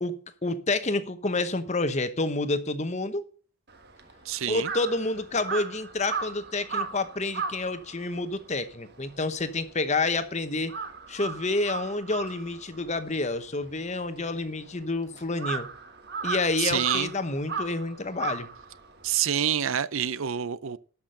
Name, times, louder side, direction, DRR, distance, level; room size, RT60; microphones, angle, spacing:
voice 1, 0.0-3.2 4.5-10.7 11.1-15.7 16.2-18.5, left 2 dB, 30° left, 0.9 m, -29 dB
Crow, 3.7-10.2 10.5-19.2, right 5 dB, 45° right, 1.5 m, -36 dB
voice 2, 4.3-4.7 16.6-17.1 19.0-20.8, right 9 dB, 65° right, 0.5 m, -27 dB
12.5 x 6.0 x 6.5 m
head